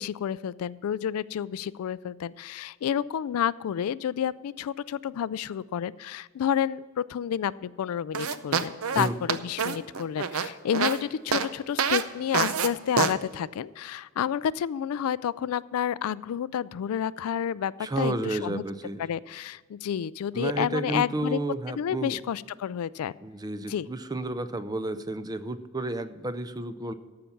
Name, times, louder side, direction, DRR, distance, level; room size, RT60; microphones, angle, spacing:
voice 1, 0.0-18.6 19.0-21.4 21.8-23.1 23.7-23.9, left 9 dB, 75° left, 18 dB, 0.3 m, -30 dB
sound 1, 8.1-11.0 11.3-11.5 11.8-12.0 12.3-12.7 13.0-13.1, right 6 dB, 70° right, 0.6 m, -26 dB
voice 2, 17.8-19.0 20.3-22.2 23.2-26.9, right 2 dB, 20° right, 12 dB, 0.5 m, -31 dB
13.5 x 5.9 x 7.1 m, 1.5 s
head